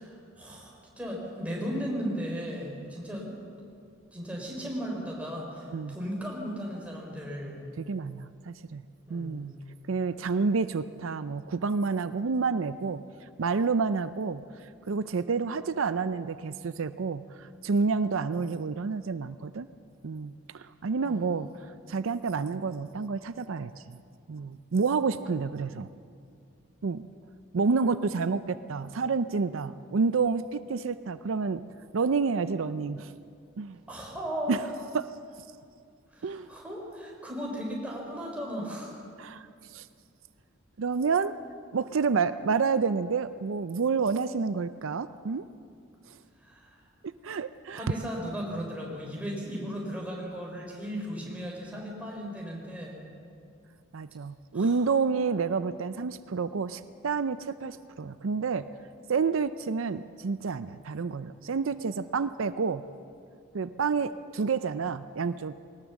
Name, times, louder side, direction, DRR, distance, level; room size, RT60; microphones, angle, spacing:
voice 1, 0.0-3.3 4.1-7.6 9.1-9.5 21.0-21.4 33.9-34.6 36.1-39.0 46.4-46.8 47.7-53.0 54.5-54.8, equal, 5° right, -2 dB, 4.3 m, -36 dB
voice 2, 7.8-8.8 9.1-9.6 9.9-13.0 13.4-14.4 14.9-19.7 20.0-21.5 21.9-24.0 24.3-25.9 26.8-27.1 27.5-31.6 31.9-33.1 33.6-33.8 34.5-34.7 34.9-35.1 36.2-36.5 39.2-39.5 39.7-39.9 40.8-41.3 41.7-45.4 46.1-46.2 47.0-47.8 48.5-48.6 53.9-58.7 59.1-62.8 63.5-65.6, right 5 dB, 80° right, 12 dB, 0.5 m, -29 dB
20.5 x 18.5 x 7.2 m, 2.4 s
head